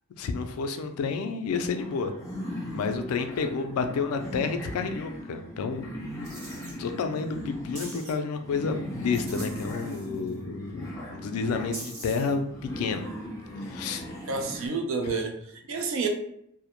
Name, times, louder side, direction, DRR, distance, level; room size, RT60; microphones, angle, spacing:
voice 1, 0.2-2.1 2.7-6.2 6.8-13.1 13.7-14.0 15.0-15.1, left 5 dB, 85° left, 7 dB, 0.3 m, -30 dB
sound 1, 1.7-14.7, equal, 15° left, 0.6 m, -38 dB
sound 2, 6.2-6.7 7.8-8.1 9.1-10.3 11.7-12.3, right 2 dB, 85° right, 1.2 m, -42 dB
voice 2, 14.3-16.1, right 4 dB, 60° right, 4 dB, 0.4 m, -30 dB
2.1 x 2.0 x 2.9 m, 0.75 s
head